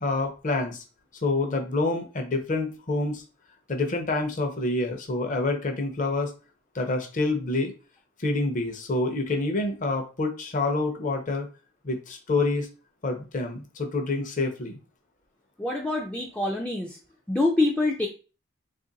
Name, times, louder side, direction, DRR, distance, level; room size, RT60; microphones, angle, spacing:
voice 1, 0.0-0.8 1.2-3.2 3.7-6.3 6.7-7.7 8.2-11.5 11.8-12.7 13.0-14.8, left 2 dB, 40° left, 4 dB, 0.6 m, -27 dB
voice 2, 15.6-17.0 17.3-18.1, left 2 dB, 5° left, -1 dB, 0.3 m, -25 dB
2.9 x 2.5 x 3.9 m, 0.34 s
head